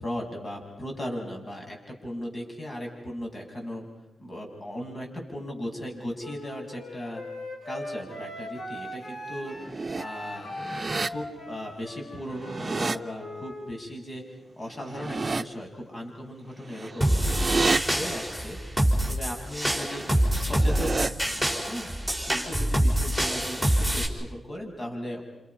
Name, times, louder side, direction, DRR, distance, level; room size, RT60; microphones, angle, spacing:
voice 1, 0.0-3.9 4.2-7.2 7.7-9.5 9.9-10.5 11.1-14.2 14.6-18.6 19.0-21.9 22.3-25.2, equal, 40° left, 1 dB, 7.3 m, -37 dB
Wind instrument woodwind instrument, 6.2-13.7, left 1 dB, 60° left, 6.7 m, -39 dB
sound 1, 9.4-10.0 10.5-11.1 12.2-13.0 14.8-15.4 16.7-17.8 20.3-21.1, right 3 dB, 40° right, 0.8 m, -29 dB
sound 2, 17.0-24.1, right 1 dB, 10° left, 5.5 m, -26 dB
28.5 x 27.5 x 5.7 m, 0.97 s
cardioid pair, 60°, 0 cm